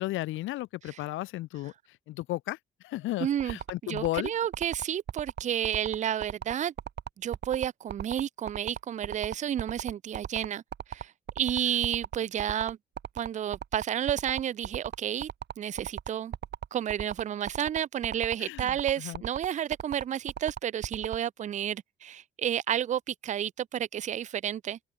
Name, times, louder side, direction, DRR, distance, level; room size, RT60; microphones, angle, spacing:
voice 1, 0.0-1.7 2.1-2.6 2.8-4.3 18.4-19.2, left 17 dB, 85° left, 0.6 m, -34 dB
voice 2, 3.2-3.6 3.8-6.7 7.2-10.6 10.9-12.8 13.2-15.3 15.6-16.3 16.7-24.8, right 10 dB, 40° right, 0.4 m, -31 dB
sound 1, 3.4-21.2, right 9 dB, 60° right, 2.4 m, -36 dB
cardioid pair, 90°, 20 cm